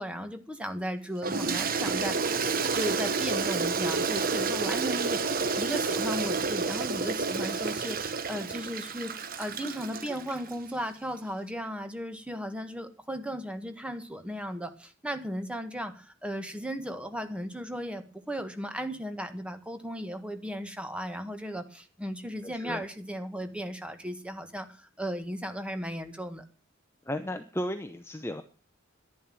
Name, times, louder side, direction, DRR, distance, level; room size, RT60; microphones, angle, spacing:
voice 1, 0.0-2.4 2.7-26.4, equal, 5° right, 8 dB, 1.6 m, -36 dB
Toilet flush, 1.2-10.6, right 4 dB, 45° right, 1.1 m, -30 dB
voice 2, 22.4-22.8 27.1-28.4, left 1 dB, 10° left, 8 dB, 0.8 m, -34 dB
11.0 x 11.0 x 7.6 m, 0.37 s
head